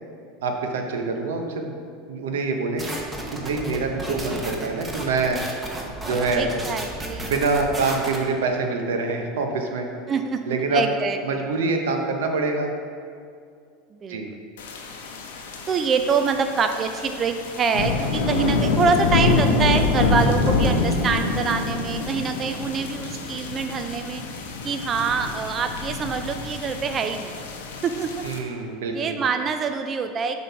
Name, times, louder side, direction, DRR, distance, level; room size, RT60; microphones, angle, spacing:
voice 1, 0.4-1.8 2.1-2.8 3.3-5.4 6.0-6.5 7.3-9.9 10.5-10.8 11.2-12.7 14.1-14.3 28.2-29.2, right 4 dB, 90° right, 3 dB, 0.7 m, -25 dB
sound 1, 2.8-8.2, right 1 dB, 15° right, 0.9 m, -33 dB
voice 2, 6.4-7.4 10.1-11.5 14.0-14.2 15.7-24.2 24.6-27.4 27.8-28.2 28.9-30.4, right 5 dB, 30° right, 8 dB, 0.3 m, -25 dB
sound 2, 14.6-28.4, left 3 dB, 90° left, 0.7 m, -26 dB
5.8 x 3.6 x 5.6 m, 2.3 s
supercardioid pair, 115°, 0 cm